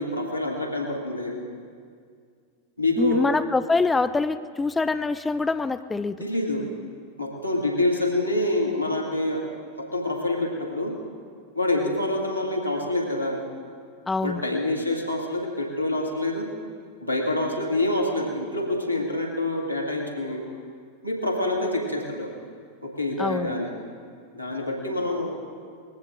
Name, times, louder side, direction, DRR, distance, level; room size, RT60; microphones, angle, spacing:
voice 1, 0.0-1.4 2.8-3.4 6.2-6.7 7.2-9.5 9.8-11.0 11.6-13.4 14.2-16.5 17.0-20.4 21.0-22.3 22.8-23.7 24.3-25.3, left 1 dB, 90° right, 0 dB, 2.1 m, -26 dB
voice 2, 3.0-6.2 14.1-14.4 23.2-23.6, left 3 dB, 10° left, 12 dB, 0.4 m, -25 dB
20.0 x 15.5 x 3.8 m, 2.1 s
figure-of-eight pair, 90°, 0 cm